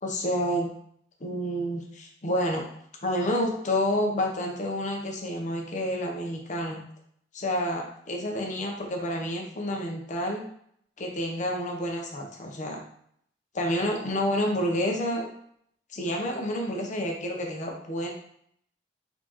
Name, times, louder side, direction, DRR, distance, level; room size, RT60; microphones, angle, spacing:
voice 1, 0.0-0.7 1.2-2.6 3.0-6.8 7.3-10.4 11.0-12.8 13.5-15.3 15.9-18.1, equal, 45° left, 0 dB, 0.9 m, -29 dB
4.2 x 3.9 x 3.1 m, 0.67 s
head